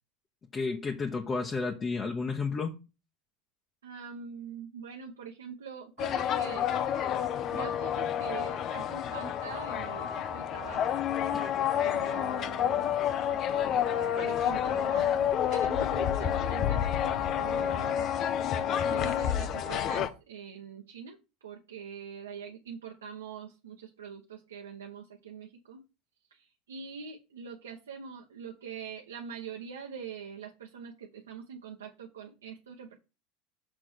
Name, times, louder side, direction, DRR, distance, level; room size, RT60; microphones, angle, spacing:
voice 1, 0.5-2.8 11.3-11.6, left 4 dB, 25° left, 1.0 m, -32 dB
voice 2, 3.8-6.7 7.5-11.0 11.8-12.9 14.1-18.1 18.8-21.2 21.4-25.8 26.3-33.0, right 6 dB, 85° right, 1.0 m, -43 dB
sound 1, 6.0-20.1, left 9 dB, 45° left, 0.7 m, -29 dB
6.8 x 3.6 x 6.2 m
hypercardioid pair, 85°, 0 cm